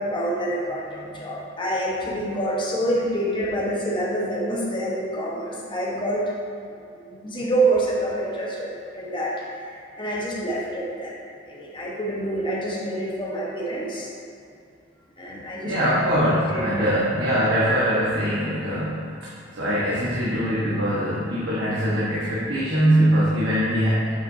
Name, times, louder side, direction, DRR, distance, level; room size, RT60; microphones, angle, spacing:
voice 1, 0.0-6.3 7.0-9.4 9.6-11.2 11.5-14.1 15.2-15.7 16.5-16.7, right 1 dB, 25° left, -4 dB, 1.1 m, -27 dB
voice 2, 15.6-24.1, equal, 85° right, -8 dB, 1.3 m, -22 dB
8.6 x 5.7 x 2.7 m, 2.4 s
head